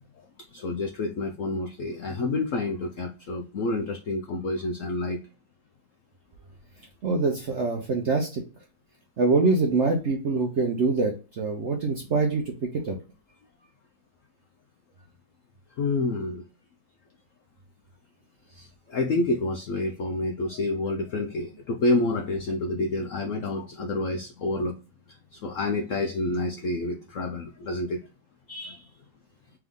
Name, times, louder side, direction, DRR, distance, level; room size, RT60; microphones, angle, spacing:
voice 1, 0.5-5.2 15.8-16.4 18.5-24.8 25.3-28.0 28.5-28.9, left 2 dB, 70° left, 3 dB, 0.7 m, -28 dB
voice 2, 7.0-8.4 9.2-13.0, right 3 dB, 60° right, 2 dB, 0.7 m, -24 dB
3.5 x 3.4 x 3.6 m, 0.34 s
omnidirectional pair, 2.0 m